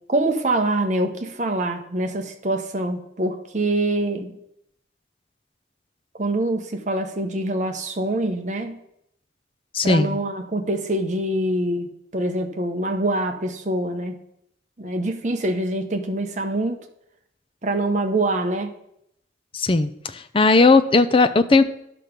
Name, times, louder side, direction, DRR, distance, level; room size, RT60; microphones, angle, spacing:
voice 1, 0.1-4.3 6.2-8.8 9.8-14.1 14.8-16.8 17.6-18.7, right 1 dB, 40° right, 5 dB, 0.9 m, -25 dB
voice 2, 9.7-10.2 19.5-21.6, left 3 dB, 30° left, 11 dB, 0.4 m, -17 dB
10.5 x 5.9 x 5.1 m, 0.79 s
head